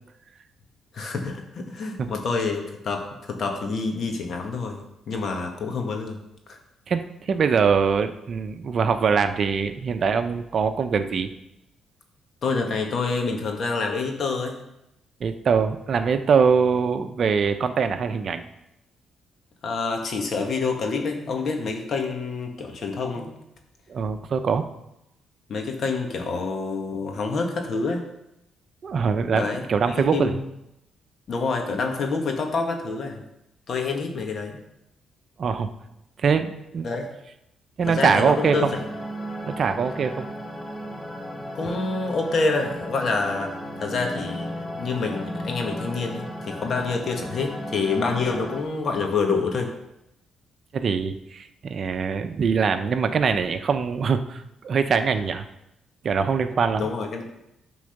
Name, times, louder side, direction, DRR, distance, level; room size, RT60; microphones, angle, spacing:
voice 1, 0.9-6.2 6.5-6.6 12.4-14.6 19.6-23.3 25.5-28.1 29.3-30.4 31.3-33.2 33.7-34.6 36.8-37.1 37.9-38.8 41.5-44.5 44.8-49.7 56.8-57.2, left 4 dB, 55° left, 3 dB, 1.7 m, -27 dB
voice 2, 6.9-11.3 15.2-18.5 23.9-24.6 28.8-30.4 35.4-35.7 36.2-36.9 37.8-38.7 39.4-40.3 50.7-55.5 56.0-56.9, right 6 dB, 50° right, 9 dB, 0.7 m, -23 dB
sound 1, 37.8-48.6, equal, 10° left, 1.5 m, -35 dB
10.5 x 4.0 x 6.6 m, 0.85 s
cardioid pair, 90°, 0 cm